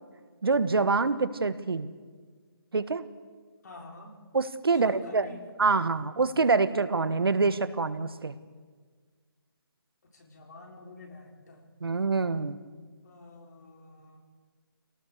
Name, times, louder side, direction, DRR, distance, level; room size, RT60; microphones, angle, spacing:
voice 1, 0.4-1.9 2.7-3.0 4.3-5.3 5.6-8.3 11.8-12.6, right 4 dB, 80° right, 12 dB, 1.5 m, -26 dB
voice 2, 3.6-4.2 4.7-5.5 10.0-11.7 13.0-14.2, left 3 dB, 45° left, 1 dB, 4.6 m, -48 dB
25.5 x 18.5 x 6.7 m, 1.5 s
hypercardioid pair, 165°, 12 cm